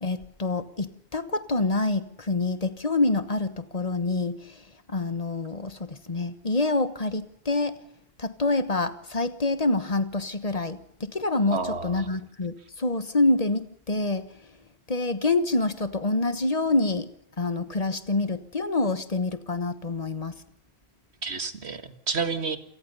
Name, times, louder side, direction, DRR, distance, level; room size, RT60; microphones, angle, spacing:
voice 1, 0.0-4.5 4.9-7.8 8.2-14.3 14.9-17.1 17.4-20.3, left 2 dB, 35° left, 13 dB, 1.3 m, -26 dB
voice 2, 11.5-12.1 21.2-22.6, right 4 dB, 90° right, 10 dB, 2.0 m, -30 dB
27.5 x 18.5 x 5.5 m, 0.69 s
omnidirectional pair, 1.1 m